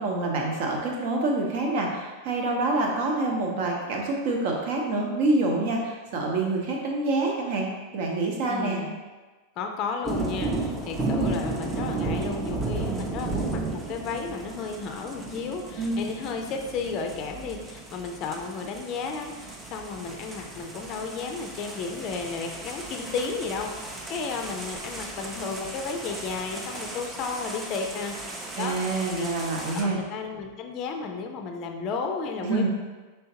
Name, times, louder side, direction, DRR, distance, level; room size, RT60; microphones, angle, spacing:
voice 1, 0.0-7.7 7.9-8.8 15.8-16.0 28.6-30.0 32.4-32.7, right 2 dB, 50° right, 0 dB, 0.9 m, -26 dB
voice 2, 8.5-8.9 9.6-28.7 29.1-29.3 29.7-32.7, left 4 dB, 35° left, 4 dB, 0.5 m, -33 dB
sound 1, 10.0-29.8, right 2 dB, 15° right, 0.6 m, -34 dB
5.5 x 3.4 x 2.8 m, 1.3 s
figure-of-eight pair, 90°, 0 cm